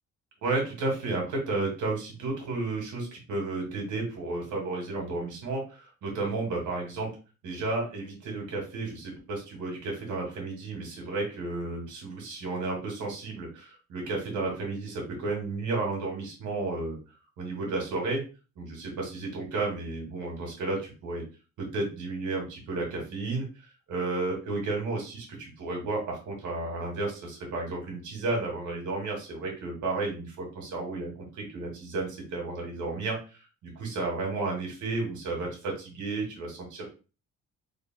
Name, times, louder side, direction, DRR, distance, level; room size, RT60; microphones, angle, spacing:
voice 1, 0.4-7.1 7.4-17.0 17.4-18.2 18.6-21.2 21.6-23.5 23.9-36.9, right 3 dB, 75° right, 0 dB, 2.5 m, -32 dB
4.7 x 4.7 x 2.3 m, 0.33 s
cardioid pair, 90°, 30 cm